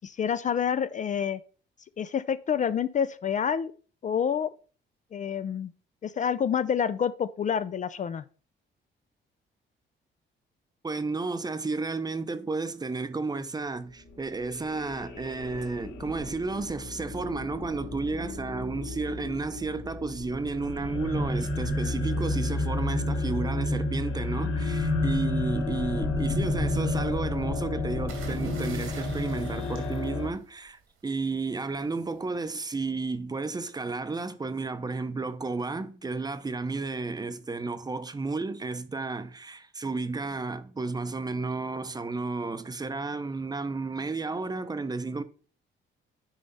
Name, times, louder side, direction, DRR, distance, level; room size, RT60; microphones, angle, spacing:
voice 1, 0.0-1.4 2.0-3.7 4.0-4.5 5.1-5.7 6.0-8.2, left 7 dB, 40° left, 0.4 m, -28 dB
voice 2, 10.8-45.2, right 3 dB, 20° right, 0.7 m, -32 dB
sound 1, 14.1-30.3, left 2 dB, 90° left, 3.0 m, -31 dB
sound 2, 28.1-30.8 32.1-32.4, right 6 dB, 90° right, 2.4 m, -44 dB
9.8 x 3.4 x 5.4 m
cardioid pair, 125°, 20 cm